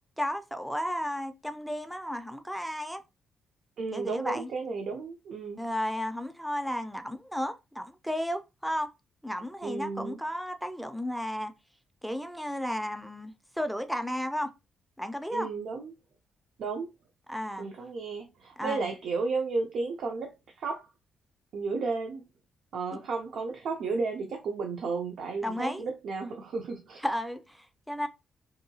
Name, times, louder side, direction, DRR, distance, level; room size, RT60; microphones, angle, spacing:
voice 1, 0.2-3.0 3.9-4.5 5.6-8.9 9.2-11.5 12.0-14.5 15.0-15.5 17.3-17.7 18.6-18.9 25.4-25.9 27.0-28.1, equal, ahead, 0.3 m, -33 dB
voice 2, 3.8-5.6 9.6-10.2 15.3-15.9 16.6-16.9 17.6-20.3 20.6-20.9 21.5-22.2 22.7-27.0, right 4 dB, 70° right, 0.5 m, -33 dB
2.7 x 2.2 x 2.7 m
cardioid pair, 115°, 0 cm